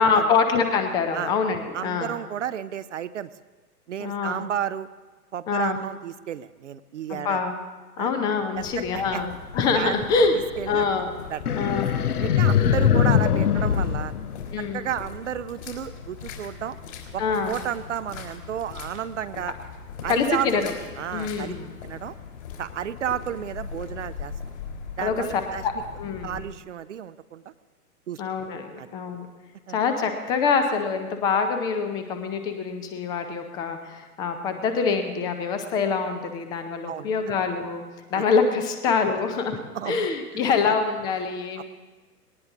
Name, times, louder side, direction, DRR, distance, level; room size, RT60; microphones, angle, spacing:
voice 1, 0.0-2.1 4.0-4.4 5.5-5.8 7.1-7.5 8.0-10.4 10.7-11.1 11.6-11.9 12.2-12.7 14.5-14.8 17.2-17.6 20.1-20.7 21.1-21.7 25.0-25.1 25.6-25.7 26.0-26.4 28.2-29.3 29.7-37.8 38.1-39.6 39.9-41.6, left 5 dB, 10° left, 7 dB, 0.5 m, -25 dB
voice 2, 1.7-3.3 3.9-4.9 5.3-7.4 8.0-8.1 8.6-9.3 9.7-10.1 10.6-10.8 11.3-11.4 12.2-14.1 14.6-16.8 17.1-19.6 20.0-20.6 21.0-21.5 21.8-22.2 22.6-24.3 25.0-25.6 26.2-27.5 28.1-28.2 28.8-28.9 29.7-29.8 36.9-37.1 38.1-38.2 39.7-40.1 40.3-40.8 41.6-41.7, right 9 dB, 50° right, 14 dB, 0.6 m, -32 dB
sound 1, 8.6-26.4, left 6 dB, 50° left, 3.8 m, -40 dB
sound 2, 11.5-14.9, left 8 dB, 70° left, 0.9 m, -22 dB
20.0 x 18.5 x 3.7 m, 1.3 s
figure-of-eight pair, 115°, 48 cm